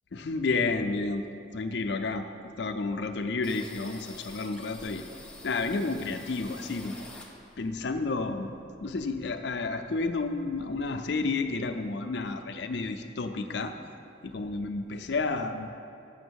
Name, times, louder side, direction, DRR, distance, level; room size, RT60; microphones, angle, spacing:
voice 1, 0.1-1.2 1.5-2.2 2.6-5.0 5.4-6.9 7.6-8.5 8.8-13.7 14.2-15.7, left 3 dB, 65° left, 7 dB, 0.5 m, -31 dB
sound 1, 3.4-7.8 8.1-9.5 9.8-9.9 10.1-10.9, left 2 dB, 5° left, 0.6 m, -48 dB
7.0 x 5.9 x 6.3 m, 2.5 s
head